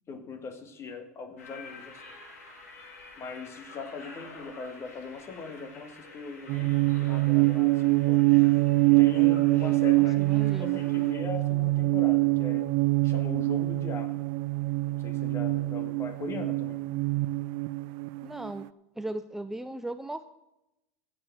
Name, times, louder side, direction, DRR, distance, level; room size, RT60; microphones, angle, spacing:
voice 1, 0.1-2.0 3.2-8.3 8.8-10.2 10.6-12.7 13.0-14.2 14.9-16.8, left 4 dB, 35° left, 8 dB, 2.2 m, -40 dB
sound 1, 1.4-11.1, left 3 dB, 80° left, 3.6 m, -49 dB
sound 2, 6.5-18.5, right 21 dB, 55° right, 0.4 m, -25 dB
voice 2, 10.0-10.8 18.2-18.7 19.0-20.2, right 1 dB, 5° right, 10 dB, 0.6 m, -37 dB
16.0 x 6.9 x 6.3 m, 0.91 s
hypercardioid pair, 95°, 8 cm